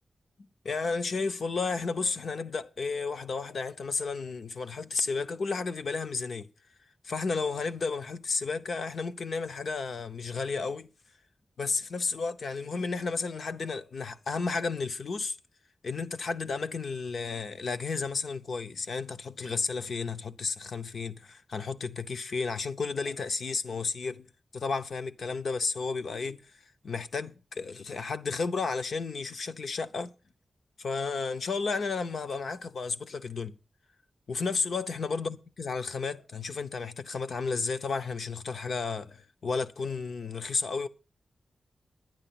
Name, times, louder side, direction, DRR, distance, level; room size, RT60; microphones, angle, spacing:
voice 1, 0.4-6.5 7.0-10.9 11.6-15.4 15.8-24.3 24.5-26.4 26.8-30.1 30.8-33.6 34.3-40.9, left 4 dB, 60° left, 0.7 m, -32 dB
10.5 x 9.9 x 5.8 m
wide cardioid pair, 170°, 0 cm